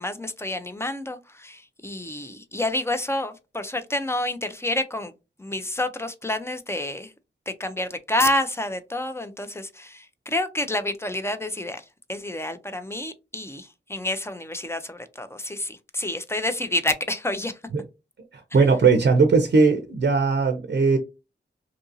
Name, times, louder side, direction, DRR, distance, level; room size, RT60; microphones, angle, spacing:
voice 1, 0.0-5.1 5.4-7.1 7.5-11.8 12.1-17.6, left 1 dB, 15° left, 0.4 m, -28 dB
voice 2, 18.3-21.0, right 4 dB, 70° right, 0.5 m, -19 dB
2.7 x 2.6 x 2.5 m
wide cardioid pair, 105°, 19 cm